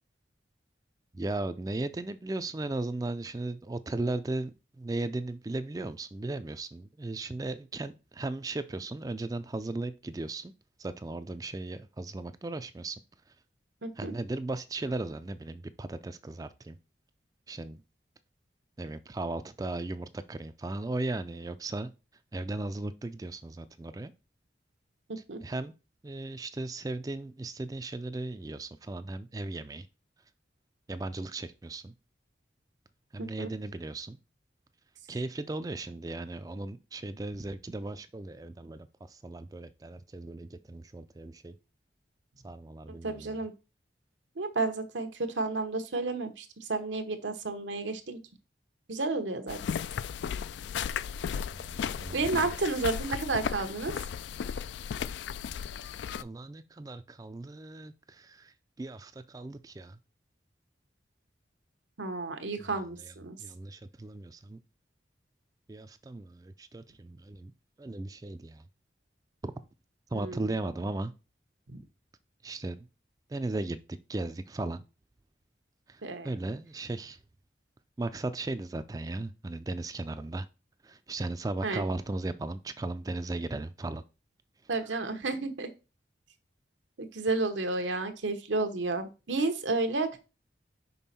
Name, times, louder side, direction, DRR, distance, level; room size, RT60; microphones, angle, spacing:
voice 1, 1.1-10.5 10.8-13.0 14.0-16.8 17.5-17.8 18.8-21.9 22.3-24.1 25.2-25.7 26.0-29.9 30.9-31.9 33.1-34.2 35.1-41.5 42.4-43.4 51.5-52.5 56.2-60.0 63.0-64.6 65.7-67.5 67.8-68.6 69.4-69.5 70.1-71.1 72.4-72.8 73.3-73.8 74.1-74.8 75.9-77.2 78.0-80.5 80.8-84.0, right 2 dB, 20° right, 0.3 m, -36 dB
voice 2, 13.8-14.1 25.3-25.4 33.2-33.5 43.0-43.5 44.4-48.2 48.9-49.6 52.1-53.9 62.0-63.4 70.1-70.5 71.7-71.8 76.0-76.3 81.6-81.8 84.7-85.7 87.0-90.2, right 3 dB, 85° right, 1.0 m, -31 dB
sound 1, 49.5-56.2, left 7 dB, 75° left, 0.3 m, -35 dB
5.4 x 5.2 x 4.2 m
head